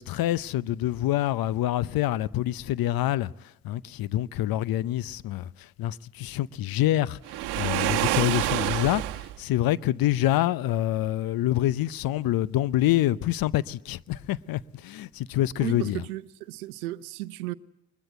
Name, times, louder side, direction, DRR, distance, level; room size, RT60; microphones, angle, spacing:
voice 1, 0.0-3.3 3.6-7.2 7.6-9.0 9.4-16.0, left 14 dB, 55° left, 0.7 m, -26 dB
Waves surf, 7.2-9.4, right 15 dB, 65° right, 1.1 m, -27 dB
voice 2, 15.6-17.5, right 17 dB, 90° right, 0.7 m, -34 dB
21.5 x 21.0 x 7.9 m
hypercardioid pair, 65°, 43 cm